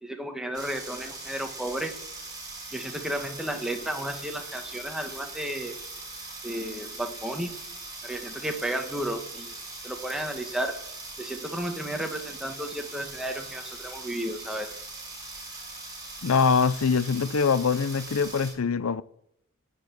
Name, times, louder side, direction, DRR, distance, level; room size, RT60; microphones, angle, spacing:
voice 1, 0.0-1.9 2.7-5.7 6.4-7.6 8.0-9.5 9.8-10.8 11.2-14.7, right 1 dB, ahead, 1.6 m, -33 dB
sound 1, 0.5-18.5, right 2 dB, 20° right, 5.3 m, -41 dB
voice 2, 16.2-19.0, left 5 dB, 85° left, 0.6 m, -23 dB
14.5 x 6.9 x 9.7 m
head